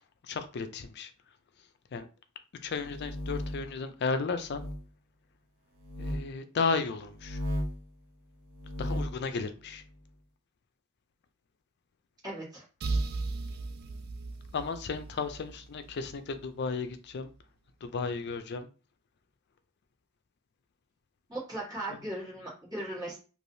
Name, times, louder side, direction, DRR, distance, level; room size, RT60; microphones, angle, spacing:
voice 1, 0.2-1.1 1.9-2.1 2.6-4.6 6.0-7.4 8.8-9.8 14.5-17.3 17.8-18.7 21.9-22.0, left 4 dB, 55° left, 10 dB, 0.4 m, -34 dB
sound 1, 2.7-3.7 4.4-4.8 5.8-6.2 7.1-7.8 8.5-9.2, left 1 dB, 80° right, 0.9 m, -35 dB
voice 2, 12.2-12.6 21.3-23.2, right 1 dB, 20° right, -7 dB, 1.5 m, -38 dB
sound 2, 12.8-16.5, right 3 dB, 45° right, 0.3 m, -36 dB
3.3 x 2.5 x 2.7 m, 0.36 s
head